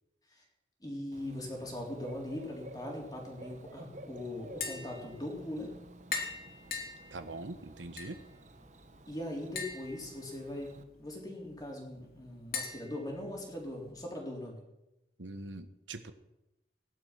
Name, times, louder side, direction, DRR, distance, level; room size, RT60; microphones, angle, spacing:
voice 1, 0.8-5.7 9.1-10.7 11.0-14.6, left 1 dB, 20° left, -1 dB, 3.9 m, -40 dB
Bird / Cricket, 1.1-10.8, right 1 dB, 40° right, 1.0 m, -52 dB
Tap, 4.4-13.9, left 5 dB, 50° left, 3.3 m, -44 dB
voice 2, 7.1-8.2 15.2-16.1, right 2 dB, 80° right, 9 dB, 1.3 m, -43 dB
17.0 x 11.5 x 6.0 m, 0.93 s
head